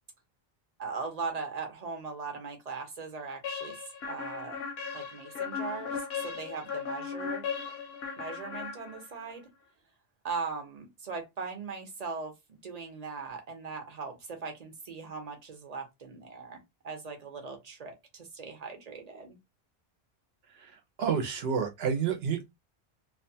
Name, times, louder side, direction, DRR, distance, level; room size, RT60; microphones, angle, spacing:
voice 1, 0.8-3.8 4.1-4.6 4.9-7.4 8.2-9.4 10.2-19.4, right 4 dB, 45° right, 0.8 m, -39 dB
sound 1, 3.4-9.3, left 6 dB, 80° left, 0.8 m, -37 dB
voice 2, 20.5-22.5, right 7 dB, 75° right, 0.9 m, -30 dB
2.5 x 2.2 x 2.7 m
omnidirectional pair, 1.0 m